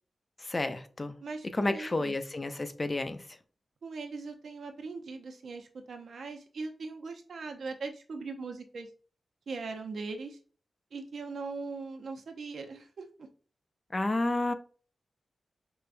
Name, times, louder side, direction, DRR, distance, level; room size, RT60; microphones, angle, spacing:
voice 1, 0.4-1.2 1.5-3.2 13.9-14.5, left 2 dB, 25° left, 0.3 m, -31 dB
voice 2, 1.2-2.1 3.8-8.9 9.5-10.4 10.9-13.0, right 4 dB, 70° right, 0.6 m, -40 dB
4.6 x 2.2 x 2.5 m
wide cardioid pair, 135°, 0 cm